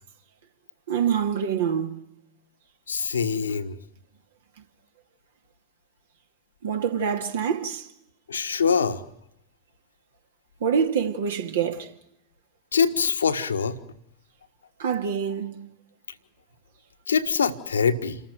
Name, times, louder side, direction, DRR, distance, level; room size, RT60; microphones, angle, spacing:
voice 1, 0.9-2.0 6.6-7.9 10.6-11.9 14.8-15.6, right 7 dB, 60° right, 2.3 m, -25 dB
voice 2, 2.9-3.8 8.3-9.0 12.7-13.8 17.1-18.2, left 6 dB, 70° left, 1.5 m, -24 dB
28.0 x 14.5 x 9.1 m
figure-of-eight pair, 90°, 0 cm